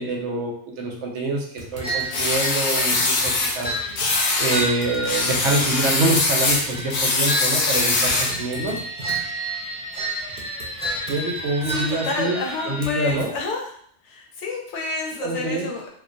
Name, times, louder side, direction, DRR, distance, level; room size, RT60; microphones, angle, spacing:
voice 1, 0.0-3.8 4.4-9.1 11.1-12.4 12.7-13.3 15.2-15.7, right 2 dB, 85° right, 0 dB, 0.9 m, -26 dB
Typing, 1.6-13.4, right 3 dB, 60° right, 0.7 m, -42 dB
sound 1, 1.8-13.2, right 1 dB, 5° right, 0.5 m, -31 dB
sound 2, 2.1-3.6 4.0-4.7 5.1-8.4, left 3 dB, 60° left, 0.6 m, -22 dB
voice 2, 11.6-13.6 14.0-15.9, left 3 dB, 85° left, 0 dB, 0.9 m, -29 dB
2.4 x 2.1 x 2.5 m, 0.63 s
omnidirectional pair, 1.2 m